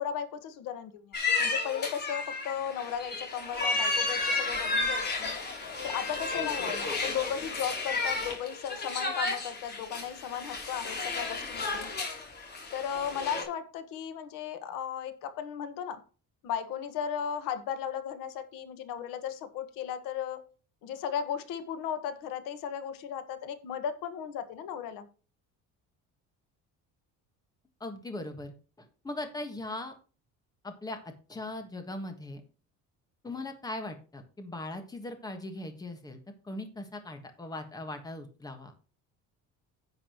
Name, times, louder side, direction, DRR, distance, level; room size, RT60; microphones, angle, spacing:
voice 1, 0.0-5.3 5.8-12.0 12.7-16.0 16.4-20.4 20.8-25.1, left 8 dB, 80° left, 10 dB, 1.6 m, -36 dB
sound 1, 1.1-13.4, left 3 dB, 30° left, 3.3 m, -32 dB
voice 2, 27.8-29.9 30.6-32.4 33.2-38.7, left 2 dB, 10° left, 7 dB, 1.5 m, -40 dB
10.5 x 8.6 x 3.0 m, 0.36 s
cardioid pair, 170°, 33 cm